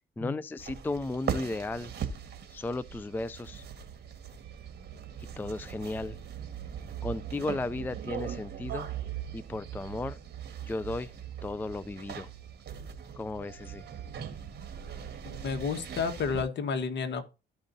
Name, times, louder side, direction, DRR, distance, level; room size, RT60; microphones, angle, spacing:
voice 1, 0.0-1.9 2.5-3.6 5.4-6.2 7.0-8.9 9.3-10.2 10.6-11.1 11.4-12.3 13.1-13.8, left 2 dB, 10° left, 0.4 m, -35 dB
sound 1, 0.6-16.4, right 8 dB, 55° right, 1.6 m, -40 dB
voice 2, 15.2-17.2, left 5 dB, 60° left, 1.4 m, -31 dB
14.0 x 5.2 x 2.7 m
cardioid pair, 90°, 20 cm